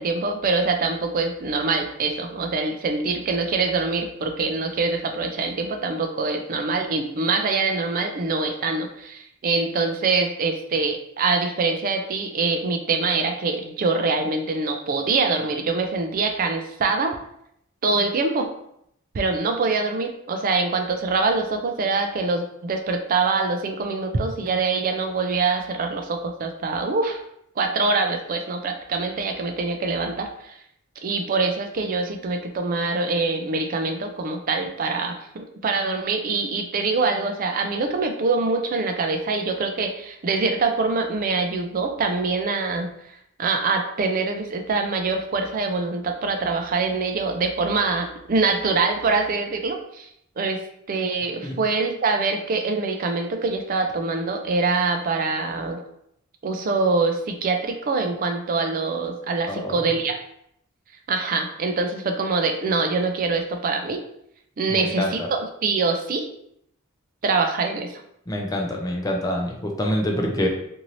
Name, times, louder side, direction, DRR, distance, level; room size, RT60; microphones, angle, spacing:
voice 1, 0.0-17.1 17.8-18.5 19.1-27.2 27.6-30.6 31.0-42.9 43.4-50.1 50.4-50.6 50.9-55.8 56.4-60.2 61.1-64.0 64.6-66.3 67.2-68.0, right 3 dB, 40° right, 5 dB, 0.4 m, -24 dB
voice 2, 59.5-59.8 64.7-65.3 68.3-70.5, left 1 dB, 15° left, 0 dB, 0.5 m, -26 dB
2.7 x 2.6 x 3.0 m, 0.74 s
head